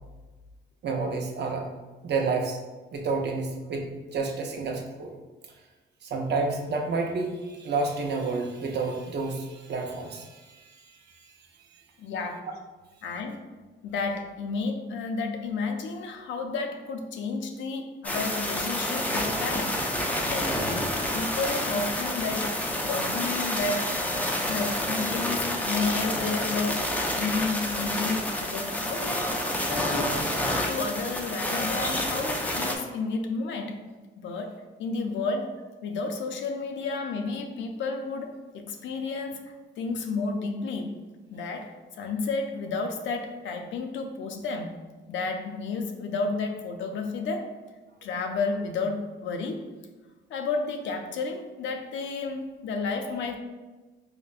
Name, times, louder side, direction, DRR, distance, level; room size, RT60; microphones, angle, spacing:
voice 1, 0.8-1.7 2.0-2.6 2.9-5.1 6.0-11.3 53.0-53.1, right 3 dB, 60° right, 2 dB, 0.6 m, -30 dB
voice 2, 12.0-12.5 13.0-13.4 13.8-19.8 20.2-29.3 29.7-33.9 34.2-35.5 35.8-40.9 41.3-44.8 45.1-47.5 48.0-49.7 50.3-53.4, left 4 dB, 70° left, 5 dB, 0.5 m, -32 dB
sound 1, 18.0-32.8, left 1 dB, 5° left, 0.5 m, -29 dB
4.8 x 2.1 x 2.4 m, 1.2 s
cardioid pair, 90°, 20 cm